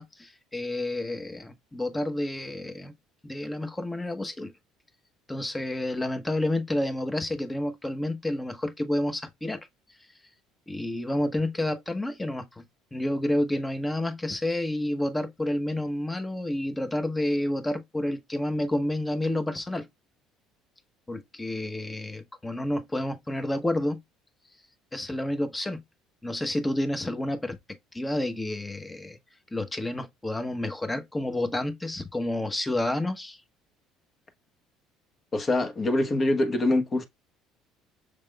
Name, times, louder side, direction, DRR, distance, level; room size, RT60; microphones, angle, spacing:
voice 1, 0.0-2.9 3.2-4.5 5.3-9.7 10.7-12.6 12.9-19.9 21.1-24.0 24.9-25.8 26.2-29.2 29.5-33.4, left 1 dB, 15° left, 1.0 m, -30 dB
voice 2, 35.3-37.0, left 2 dB, 35° left, 1.2 m, -24 dB
6.5 x 3.4 x 2.3 m
hypercardioid pair, 70°, 0 cm